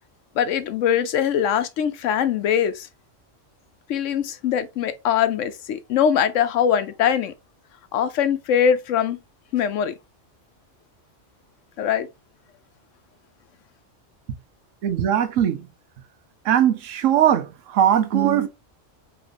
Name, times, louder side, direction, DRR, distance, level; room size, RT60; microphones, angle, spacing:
voice 1, 0.4-2.9 3.9-7.3 7.9-9.2 9.5-9.9 11.8-12.1, left 8 dB, 80° left, 1.0 m, -22 dB
voice 2, 14.8-15.7 16.4-18.5, right 10 dB, 85° right, 1.1 m, -20 dB
5.0 x 3.3 x 2.6 m
omnidirectional pair, 1.3 m